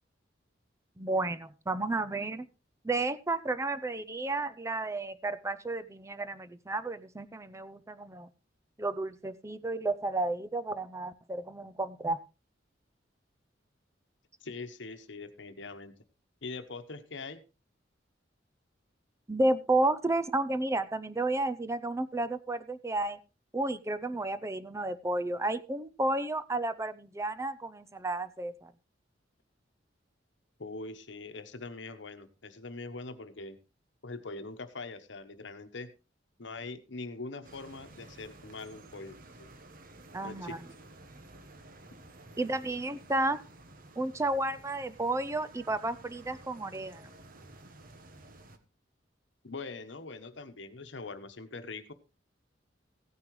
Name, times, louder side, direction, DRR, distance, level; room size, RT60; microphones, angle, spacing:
voice 1, 1.0-2.5 2.8-8.3 8.8-12.2 19.3-23.2 23.5-28.7 40.1-40.6 42.4-43.4 44.0-47.1, right 2 dB, 15° right, 12 dB, 0.5 m, -32 dB
voice 2, 14.4-15.9 16.4-17.4 30.6-33.6 34.0-35.9 36.4-39.5 40.2-40.6 49.4-51.9, left 3 dB, 70° left, 10 dB, 1.1 m, -42 dB
sound 1, 37.4-48.6, right 2 dB, 50° right, 1.2 m, -53 dB
15.5 x 9.6 x 3.2 m, 0.30 s
head